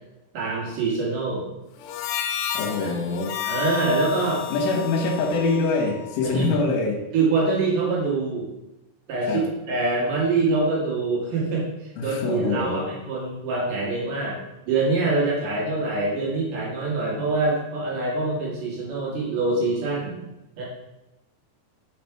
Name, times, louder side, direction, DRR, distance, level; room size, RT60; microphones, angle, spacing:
voice 1, 0.3-1.5 2.8-2.9 3.4-4.5 6.2-6.5 7.1-8.5 9.1-14.4 14.7-20.2 20.6-20.7, right 3 dB, 60° right, -4 dB, 2.7 m, -25 dB
Harmonica, 1.8-6.4, left 9 dB, 90° left, 2.7 m, -32 dB
voice 2, 2.5-3.4 4.5-7.0 9.3-9.5 12.0-12.9, left 3 dB, 65° left, 0 dB, 2.6 m, -24 dB
6.0 x 4.2 x 4.5 m, 0.95 s
omnidirectional pair, 4.8 m